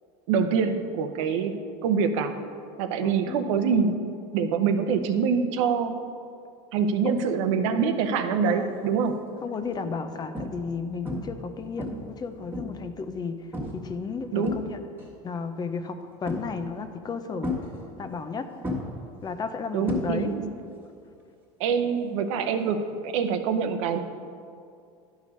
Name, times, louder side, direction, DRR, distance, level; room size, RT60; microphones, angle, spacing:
voice 1, 0.3-2.4 2.8-6.0 6.7-9.3 14.3-14.6 19.7-20.5 21.6-24.0, right 6 dB, 80° right, 8 dB, 0.7 m, -25 dB
voice 2, 3.0-3.4 7.0-7.2 8.3-8.7 9.4-14.8 15.2-17.5 18.0-18.5 19.2-20.3, left 5 dB, 25° left, 9 dB, 0.6 m, -33 dB
sound 1, 8.7-9.0 9.6-9.8 10.3-10.8 11.1-11.5 11.8-12.9 13.5-13.9 14.2-15.1 16.3-16.8 17.4-18.3 18.6-20.5 20.8-21.2 23.3-23.4, left 1 dB, 10° right, 1.5 m, -34 dB
11.5 x 4.8 x 5.4 m, 2.4 s
supercardioid pair, 120°, 16 cm